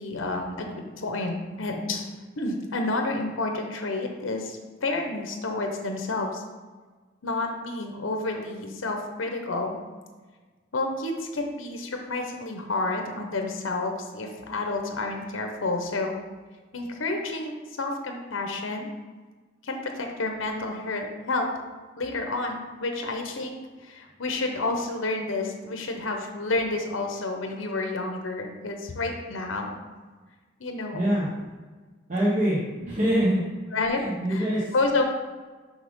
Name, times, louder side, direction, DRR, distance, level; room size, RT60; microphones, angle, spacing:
voice 1, 0.0-2.1 2.4-6.4 7.2-9.8 10.7-16.2 16.7-18.9 19.6-21.5 22.0-29.7 30.6-31.1 32.8-32.9 33.7-34.0 34.3-35.0, left 2 dB, 80° left, 3 dB, 0.9 m, -30 dB
voice 2, 30.9-31.3 32.1-32.6 32.9-33.4 33.9-34.7, equal, 40° right, -6 dB, 1.0 m, -24 dB
6.5 x 5.1 x 3.6 m, 1.4 s
head